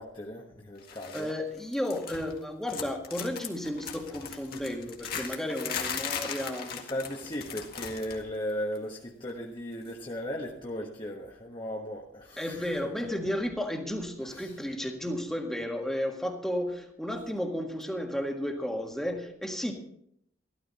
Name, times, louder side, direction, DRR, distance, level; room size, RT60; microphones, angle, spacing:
voice 1, 0.0-1.3 4.5-4.8 5.1-5.4 6.7-12.8 14.3-14.6, equal, 25° left, -1 dB, 1.3 m, -37 dB
sound 1, 0.9-1.3 1.6-2.4 2.7-8.2 8.5-8.8 9.8-9.9, left 7 dB, 50° left, 2.0 m, -38 dB
voice 2, 1.1-6.7 12.4-19.7, left 1 dB, ahead, 2 dB, 1.6 m, -33 dB
14.0 x 13.0 x 4.2 m, 0.70 s
head